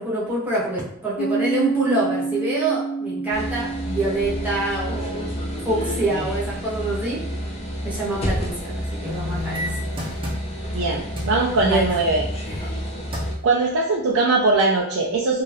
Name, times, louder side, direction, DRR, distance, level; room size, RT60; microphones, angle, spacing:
voice 1, 0.0-5.3 5.6-7.2 7.8-9.6 11.6-12.0 12.5-12.7, right 2 dB, 5° right, -8 dB, 0.9 m, -26 dB
Piano, 1.2-8.4, right 3 dB, 70° left, 1.0 m, -30 dB
sound 1, 3.3-13.3, equal, 30° left, 0.6 m, -29 dB
sound 2, 9.0-10.8 11.2-11.4 12.7-12.8 13.1-13.5 14.0-14.1, left 2 dB, 25° right, 0.6 m, -31 dB
voice 2, 10.7-12.2 13.4-15.4, right 3 dB, 70° right, -3 dB, 0.4 m, -21 dB
2.6 x 2.4 x 3.2 m, 0.75 s
head